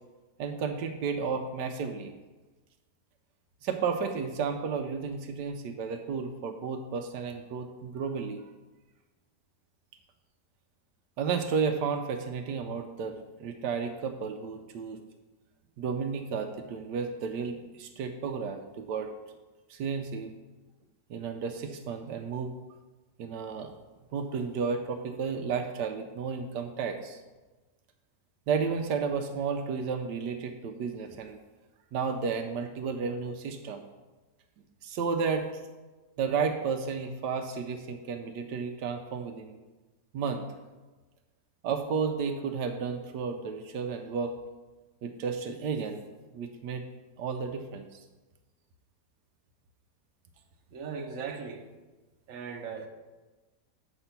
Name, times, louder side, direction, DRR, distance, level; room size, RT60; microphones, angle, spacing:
voice 1, 0.4-2.1 3.6-8.5 11.2-15.0 15.8-19.1 19.7-20.3 21.1-22.5 23.2-23.7 24.1-27.2 28.5-31.4 31.9-33.8 34.8-35.5 36.2-39.6 40.1-40.5 41.6-44.4 45.0-46.0 46.3-46.8 47.2-48.0, right 5 dB, 80° right, 6 dB, 1.2 m, -32 dB
voice 2, 50.7-51.6 52.3-52.9, right 5 dB, 55° right, 2 dB, 1.1 m, -38 dB
7.9 x 5.1 x 5.7 m, 1.2 s
omnidirectional pair, 1.8 m